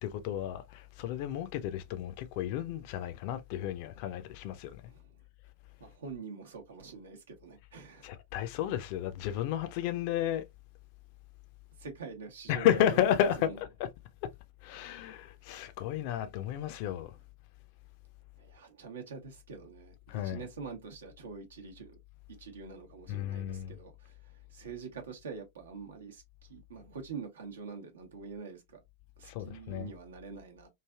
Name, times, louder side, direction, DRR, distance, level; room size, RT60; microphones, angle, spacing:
voice 1, 0.0-4.8 8.0-10.4 12.5-13.9 14.2-14.3 14.6-17.2 20.1-20.5 23.1-23.8 29.2-29.9, left 11 dB, 45° left, 0.5 m, -32 dB
voice 2, 5.8-8.1 11.8-13.5 18.4-22.0 22.4-28.8 29.2-30.7, right 5 dB, 65° right, 0.9 m, -45 dB
3.2 x 2.6 x 2.3 m
figure-of-eight pair, 90°, 0 cm